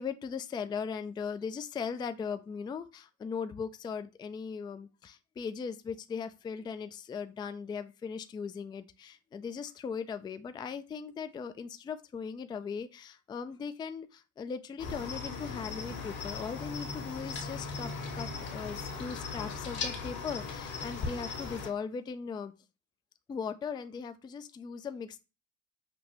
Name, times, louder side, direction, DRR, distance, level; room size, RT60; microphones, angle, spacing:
voice 1, 0.0-22.5 23.3-25.2, left 6 dB, 15° left, 11 dB, 0.3 m, -39 dB
Cricket, 14.8-21.7, left 4 dB, 55° left, 1.5 m, -38 dB
5.9 x 2.5 x 3.0 m, 0.29 s
supercardioid pair, 80°, 35 cm